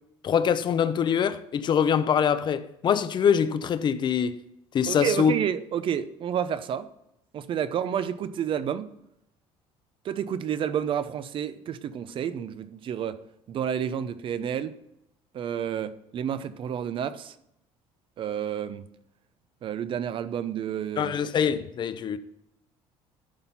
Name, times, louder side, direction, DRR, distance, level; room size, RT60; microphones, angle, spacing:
voice 1, 0.2-4.4 4.7-5.3 21.0-22.2, left 7 dB, 40° left, 0.7 m, -24 dB
voice 2, 4.9-6.9 7.3-8.9 10.0-13.2 13.5-14.8 15.3-17.3 18.2-18.8 19.6-21.1, right 9 dB, 50° right, 0.6 m, -30 dB
11.5 x 4.2 x 5.6 m
cardioid pair, 105°, 12 cm